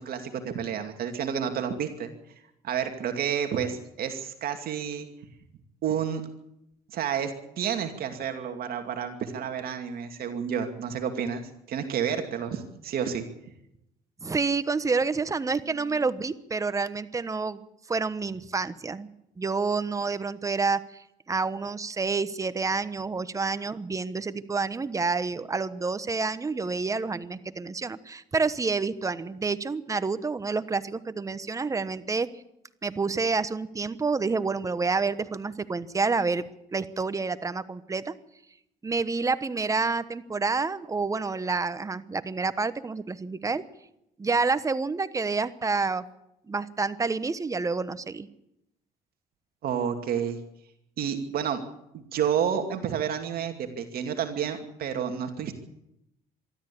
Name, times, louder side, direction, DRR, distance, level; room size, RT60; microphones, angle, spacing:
voice 1, 0.0-2.1 2.6-5.1 5.8-6.2 6.9-11.4 11.7-13.2 49.6-50.4 51.0-51.6 51.9-55.5, right 8 dB, 65° right, 6 dB, 2.5 m, -30 dB
voice 2, 14.2-17.6 17.9-19.1 19.4-20.8 21.3-32.3 32.8-36.4 36.7-38.1 38.8-43.6 44.2-46.0 46.5-48.3, right 4 dB, 20° right, 13 dB, 1.1 m, -28 dB
23.5 x 13.0 x 8.6 m, 0.83 s
cardioid pair, 110°, 17 cm